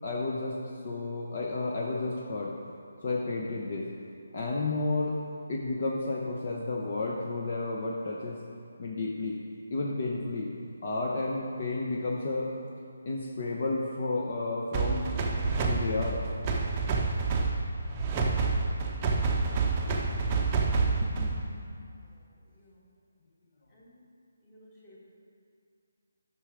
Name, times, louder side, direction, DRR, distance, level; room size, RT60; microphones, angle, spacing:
voice 1, 0.0-0.6 0.8-2.5 3.0-3.9 4.3-5.1 5.5-8.4 8.8-9.4 9.7-10.5 10.8-12.5 13.0-15.1 15.7-16.2 21.1-21.8, left 3 dB, 45° left, -2 dB, 0.9 m, -32 dB
sound 1, 14.7-21.5, right 4 dB, 20° right, 0.7 m, -28 dB
voice 2, 24.4-25.0, equal, 15° left, -7 dB, 1.9 m, -56 dB
9.7 x 6.2 x 5.0 m, 2.3 s
hypercardioid pair, 165°, 0 cm